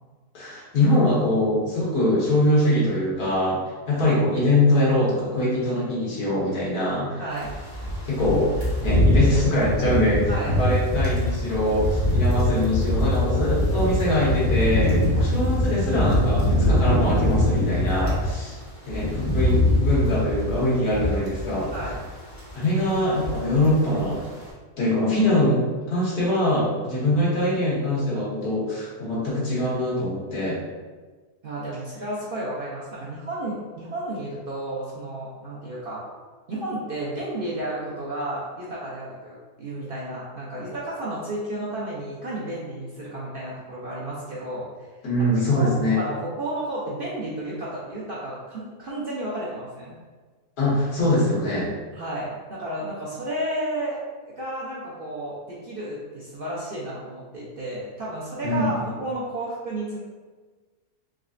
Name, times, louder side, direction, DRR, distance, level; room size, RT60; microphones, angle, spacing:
voice 1, 0.3-3.6 3.9-7.2 8.1-8.5 8.8-18.4 18.9-21.7 22.5-24.2 24.8-30.6 45.0-46.0 50.6-51.7 58.4-58.7, left 1 dB, 75° left, -7 dB, 1.7 m, -23 dB
voice 2, 7.2-7.5 10.3-10.6 17.9-18.2 21.7-22.0 31.4-36.0 36.5-44.9 45.6-49.9 51.9-54.0 54.4-60.0, right 1 dB, 70° right, -6 dB, 0.5 m, -32 dB
sound 1, 7.4-18.3 18.7-22.1 22.3-22.6 22.9-23.7 24.0-24.2, left 1 dB, 25° left, 0.7 m, -23 dB
3.7 x 3.2 x 2.5 m, 1.4 s
omnidirectional pair, 1.7 m